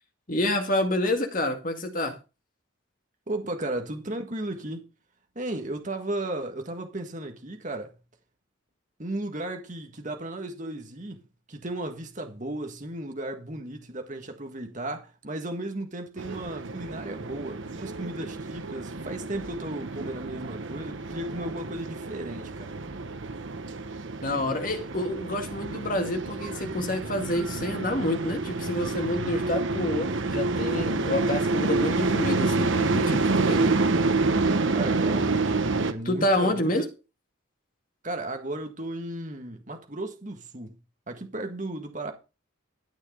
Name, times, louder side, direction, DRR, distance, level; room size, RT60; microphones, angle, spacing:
voice 1, 0.3-2.2 24.2-33.7 36.0-36.9, left 1 dB, 40° left, 2.2 m, -28 dB
voice 2, 3.3-4.8 5.3-8.0 9.0-11.2 11.5-22.8 34.7-35.6 35.9-36.7 38.0-40.8 41.1-42.1, right 1 dB, 35° right, 1.7 m, -35 dB
sound 1, 16.2-35.9, right 3 dB, 65° right, 1.0 m, -28 dB
12.5 x 6.5 x 5.0 m
head